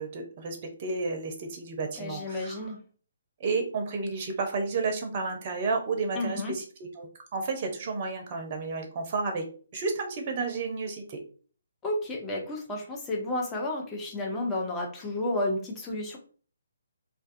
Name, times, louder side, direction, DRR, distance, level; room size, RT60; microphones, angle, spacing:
voice 1, 0.0-2.6 3.4-9.4 9.7-11.2, right 4 dB, 35° right, 3 dB, 0.6 m, -32 dB
voice 2, 2.0-2.8 6.1-6.5 11.8-16.2, left 1 dB, 15° left, -1 dB, 0.6 m, -31 dB
2.3 x 2.3 x 2.5 m, 0.42 s
figure-of-eight pair, 135°, 0 cm